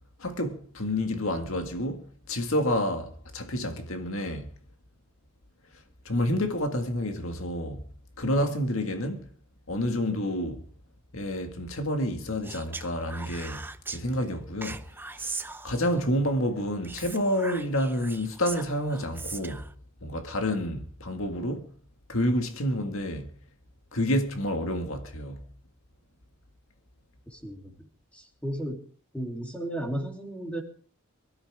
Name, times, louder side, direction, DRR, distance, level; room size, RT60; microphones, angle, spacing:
voice 1, 0.2-4.5 6.1-7.8 8.2-9.3 9.7-10.6 11.1-14.8 15.2-19.7 20.0-21.7 22.1-23.3 23.9-25.5, left 1 dB, 70° left, 1.9 m, -29 dB
Speech, 12.4-14.0 14.6-16.0 16.8-19.7, right 3 dB, 10° right, 0.6 m, -39 dB
voice 2, 27.3-27.7 28.1-28.8 29.1-30.6, right 1 dB, 5° left, 3.0 m, -34 dB
24.0 x 13.0 x 3.6 m
head